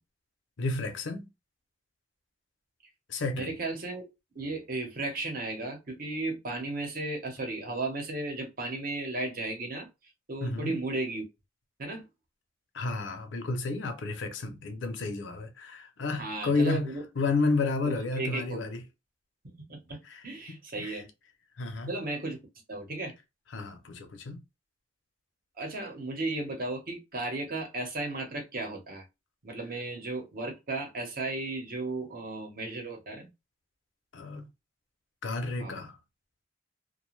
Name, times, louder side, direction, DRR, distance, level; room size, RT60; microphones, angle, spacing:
voice 1, 0.6-1.3 3.1-3.5 10.4-10.8 12.7-16.9 17.2-18.8 20.1-20.2 20.8-21.0 21.6-21.9 23.5-24.4 34.1-34.5 35.2-35.9, left 3 dB, 80° left, 0.6 m, -31 dB
voice 2, 3.3-4.0 4.3-9.9 10.3-11.2 11.8-12.1 16.2-17.0 17.8-18.6 19.4-21.1 21.9-22.4 22.7-23.1 25.6-29.0 29.4-33.3 35.5-35.8, right 2 dB, 50° right, 0.9 m, -35 dB
2.5 x 2.2 x 3.1 m
head